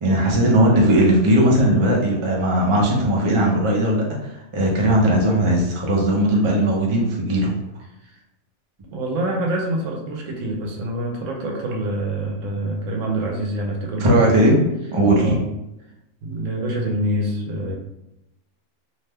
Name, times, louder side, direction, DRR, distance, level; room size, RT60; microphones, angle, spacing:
voice 1, 0.0-7.5 14.0-14.6 14.9-15.4, right 1 dB, 40° right, -2 dB, 0.4 m, -18 dB
voice 2, 8.8-14.5 15.2-15.4 16.2-17.7, right 1 dB, 75° right, 1 dB, 1.0 m, -26 dB
2.7 x 2.1 x 3.3 m, 0.88 s
omnidirectional pair, 1.4 m